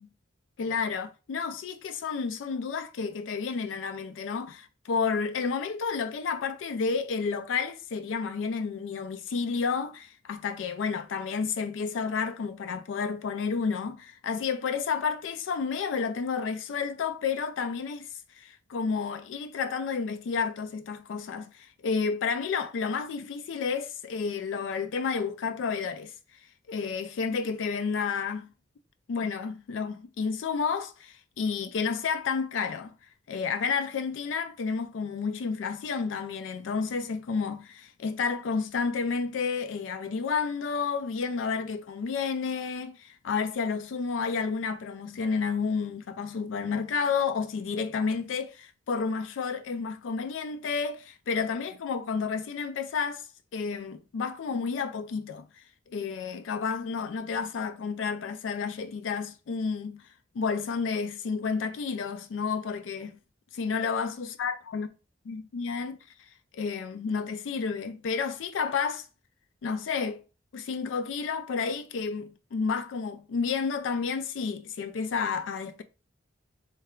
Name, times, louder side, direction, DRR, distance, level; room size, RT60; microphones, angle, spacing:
voice 1, 0.6-18.1 18.3-26.1 26.7-28.5 29.1-32.9 33.3-53.3 53.5-55.5 55.9-60.0 60.3-63.2 63.5-64.9 65.3-66.0 66.5-69.1 69.6-70.2 70.5-75.8, left 5 dB, 85° left, 0.4 m, -31 dB
3.3 x 3.3 x 3.6 m
head